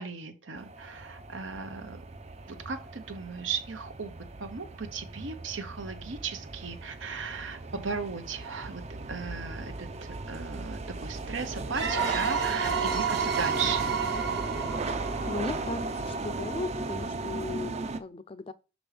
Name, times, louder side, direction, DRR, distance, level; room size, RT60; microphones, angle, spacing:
voice 1, 0.0-2.0 2.5-4.1 4.4-8.8 9.1-13.9, right 5 dB, 85° right, 0.9 m, -36 dB
sound 1, 0.6-18.0, right 3 dB, 35° right, 0.5 m, -37 dB
sound 2, 11.7-16.3, right 6 dB, 60° right, 1.5 m, -31 dB
voice 2, 15.2-18.5, left 3 dB, 30° left, 0.4 m, -37 dB
6.0 x 5.2 x 3.3 m
head